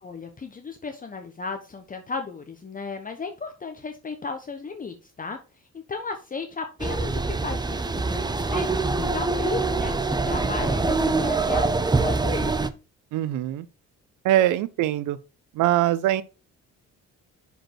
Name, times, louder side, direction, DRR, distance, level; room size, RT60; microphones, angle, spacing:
voice 1, 0.0-5.4 5.7-12.6, left 4 dB, 30° left, 1.0 m, -35 dB
sound 1, 6.8-12.7, right 3 dB, 15° right, 0.6 m, -24 dB
voice 2, 13.1-13.7 14.2-15.2 15.6-16.2, right 13 dB, 80° right, 0.5 m, -22 dB
6.0 x 5.2 x 4.6 m
cardioid pair, 90°, 30 cm